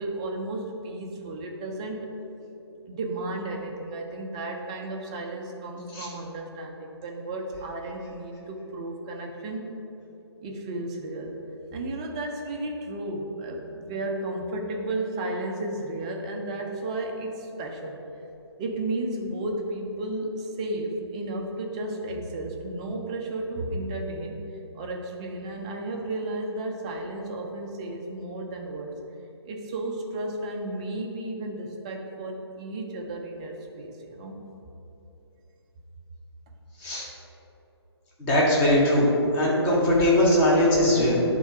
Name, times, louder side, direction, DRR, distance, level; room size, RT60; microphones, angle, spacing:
voice 1, 0.0-2.1 2.9-9.7 10.4-11.3 11.7-18.0 18.6-24.4 24.7-29.0 29.4-34.4, right 2 dB, 15° right, 1 dB, 0.4 m, -33 dB
voice 2, 38.2-39.1 39.3-41.2, left 1 dB, 15° left, -5 dB, 1.0 m, -20 dB
9.2 x 3.7 x 4.6 m, 3.0 s
figure-of-eight pair, 140°, 14 cm